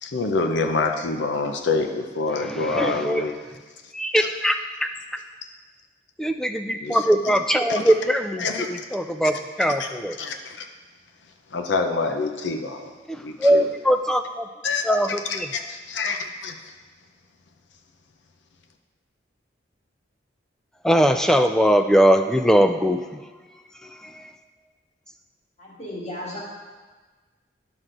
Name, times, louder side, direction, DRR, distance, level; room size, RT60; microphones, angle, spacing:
voice 1, 0.0-3.4 4.2-4.3 6.8-7.0 7.7-7.9 8.4-8.7 9.2-9.3 9.7-9.9 10.2-10.7 11.5-12.9 13.2-13.7 14.6-16.6, left 3 dB, 75° left, 5 dB, 0.6 m, -27 dB
voice 2, 2.5-3.2 3.9-4.9 6.2-10.2 13.1-14.4 14.8-15.5 20.8-23.2, equal, 5° left, 7 dB, 0.3 m, -21 dB
voice 3, 25.6-26.4, left 1 dB, 35° left, -5 dB, 2.0 m, -34 dB
11.0 x 6.1 x 3.9 m, 1.4 s
head